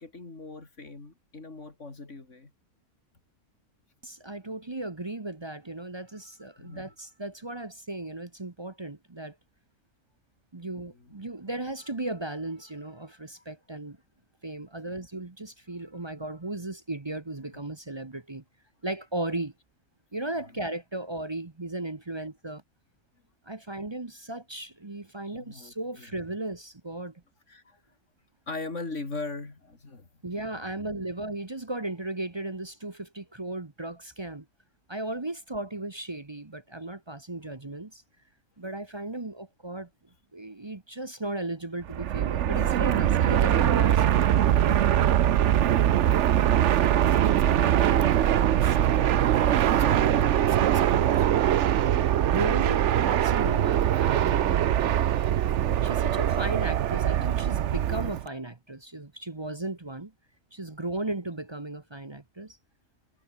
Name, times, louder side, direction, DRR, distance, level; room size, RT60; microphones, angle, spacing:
voice 1, 0.0-2.5 6.6-6.9 10.7-11.1 11.5-11.6 13.4-13.5 14.8-15.0 20.4-20.6 25.2-26.2 27.5-27.8 28.5-30.1 30.3-31.2 44.5-45.2 46.3-51.2 51.9-52.3, left 3 dB, 50° left, 3.7 m, -41 dB
voice 2, 4.0-9.3 10.5-14.0 14.4-18.4 18.8-19.5 20.1-22.6 23.5-27.1 30.2-34.4 34.9-38.0 38.6-39.9 40.3-44.2 44.5-44.9 52.2-55.4 55.8-60.1 60.5-62.6, right 2 dB, 20° right, 0.9 m, -36 dB
Fixed-wing aircraft airplane, 41.9-58.3, right 11 dB, 60° right, 0.9 m, -22 dB
omnidirectional pair, 1.6 m